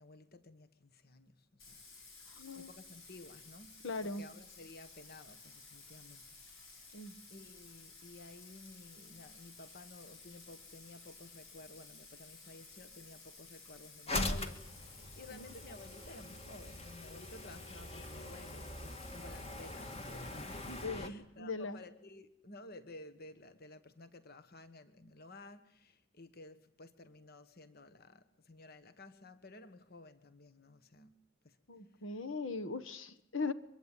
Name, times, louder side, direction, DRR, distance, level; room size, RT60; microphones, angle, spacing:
voice 1, 0.0-6.9 7.3-31.2 31.4-31.6, left 2 dB, 50° left, 11 dB, 1.5 m, -54 dB
Bathtub (filling or washing), 1.6-20.9, left 3 dB, 85° left, 8.0 m, -55 dB
voice 2, 2.3-2.7 3.8-4.2 6.9-7.1 15.3-15.4 20.8-21.8 31.7-33.5, left 3 dB, 70° left, 9 dB, 1.5 m, -39 dB
sound 1, 14.1-21.1, left 2 dB, 30° left, 2.2 m, -42 dB
23.5 x 22.5 x 9.1 m, 0.74 s
head